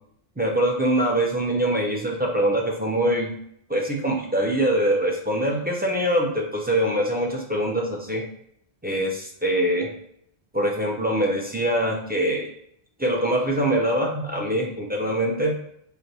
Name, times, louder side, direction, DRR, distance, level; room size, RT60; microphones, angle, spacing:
voice 1, 0.4-3.3 3.7-8.2 8.8-9.9 10.5-12.5 13.0-15.6, right 1 dB, 10° right, 0 dB, 0.5 m, -23 dB
3.2 x 2.7 x 4.1 m, 0.71 s
omnidirectional pair, 1.1 m